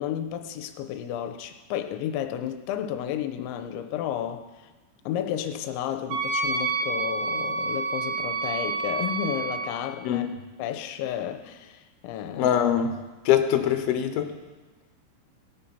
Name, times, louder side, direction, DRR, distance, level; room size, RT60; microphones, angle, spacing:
voice 1, 0.0-4.4 5.1-10.3 10.6-12.5, left 10 dB, 90° left, 8 dB, 3.0 m, -32 dB
Wind instrument woodwind instrument, 6.1-9.7, right 3 dB, 80° right, 3.7 m, -28 dB
voice 2, 12.3-12.9 13.3-14.3, left 9 dB, 70° left, 6 dB, 2.6 m, -22 dB
19.5 x 8.6 x 5.6 m, 1.2 s
omnidirectional pair, 5.4 m